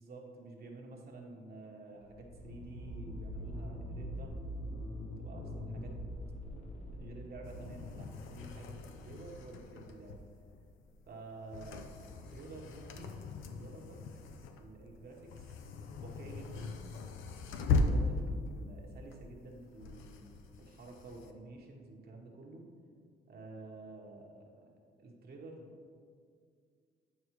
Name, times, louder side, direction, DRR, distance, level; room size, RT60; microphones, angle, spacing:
voice 1, 0.0-4.4 4.9-6.0 6.5-10.2 11.1-11.8 12.3-14.0 14.5-15.5 16.0-16.8 17.4-20.2 20.6-22.7 23.3-24.7 25.0-25.7, right 2 dB, 50° right, 0 dB, 1.2 m, -50 dB
sound 1, 2.1-8.5, equal, 35° left, 1.1 m, -43 dB
sound 2, 7.4-21.3, left 3 dB, 85° left, 0.5 m, -38 dB
8.7 x 4.7 x 3.1 m, 2.2 s
cardioid pair, 90°, 20 cm